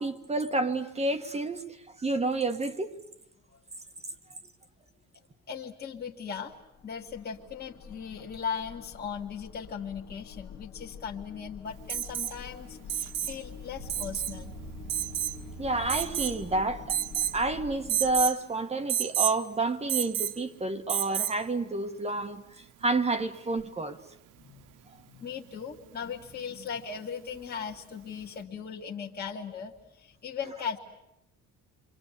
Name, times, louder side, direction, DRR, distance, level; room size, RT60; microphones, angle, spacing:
voice 1, 0.0-1.6 2.0-2.9 15.6-17.0 17.3-24.0, right 2 dB, 20° right, 1.4 m, -29 dB
voice 2, 5.5-6.5 6.8-14.5 24.5-24.6 25.1-30.8, left 7 dB, 30° left, 1.9 m, -38 dB
sound 1, 6.5-18.3, left 7 dB, 50° left, 1.7 m, -46 dB
Alarm, 11.9-12.4 12.9-13.4 13.9-14.3 14.9-15.4 15.9-16.4 16.9-17.4 17.9-18.4 18.9-19.4 19.9-20.4 20.9-21.4 23.1-23.2, right 10 dB, 65° right, 1.0 m, -30 dB
sound 2, 13.7-16.7, right 5 dB, 45° right, 1.7 m, -45 dB
28.5 x 24.5 x 8.3 m
cardioid pair, 155°, 34 cm